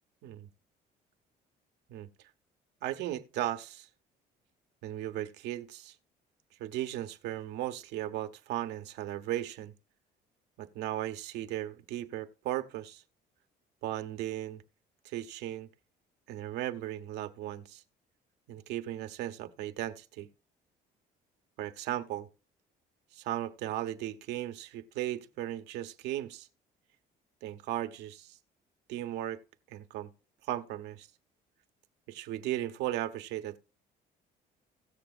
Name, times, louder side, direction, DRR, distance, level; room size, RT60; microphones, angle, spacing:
voice 1, 2.8-3.9 4.8-6.0 6.6-9.7 10.6-13.0 13.8-14.6 15.0-15.7 16.3-17.8 18.5-20.3 21.6-22.3 23.1-26.5 27.4-28.4 28.9-29.4 29.7-30.1 30.4-31.1 32.1-33.6, right 13 dB, 85° right, 1.0 m, -36 dB
17.0 x 6.8 x 2.4 m
cardioid pair, 110°, 17 cm